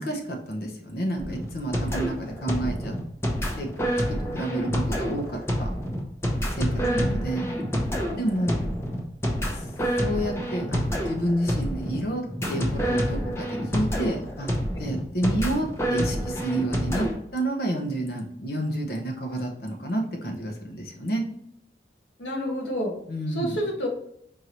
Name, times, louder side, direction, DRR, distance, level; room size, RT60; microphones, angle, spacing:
voice 1, 0.0-2.9 3.6-3.7 3.9-5.7 6.6-6.7 7.0-7.5 8.2-8.6 10.0-14.5 14.8-17.1 17.3-21.2 23.1-23.6, right 1 dB, 55° left, 3 dB, 0.8 m, -29 dB
sound 1, 1.2-17.1, equal, 15° left, 0.6 m, -28 dB
voice 2, 6.8-7.6 8.0-8.3 22.2-23.0 23.3-23.9, equal, 90° left, 1 dB, 1.1 m, -30 dB
4.7 x 2.6 x 2.9 m, 0.73 s
head